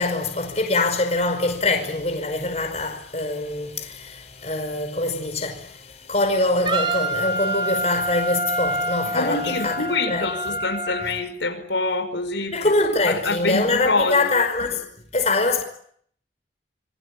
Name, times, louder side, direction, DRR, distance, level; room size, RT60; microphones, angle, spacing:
voice 1, 0.0-9.8 10.1-10.6 12.5-14.8 15.1-15.6, left 2 dB, 35° left, 5.2 m, -24 dB
Wind instrument woodwind instrument, 6.7-11.1, right 1 dB, 25° right, 4.8 m, -27 dB
voice 2, 9.1-12.6 13.1-14.3, left 3 dB, 80° left, 5.4 m, -26 dB
27.0 x 23.5 x 8.6 m
head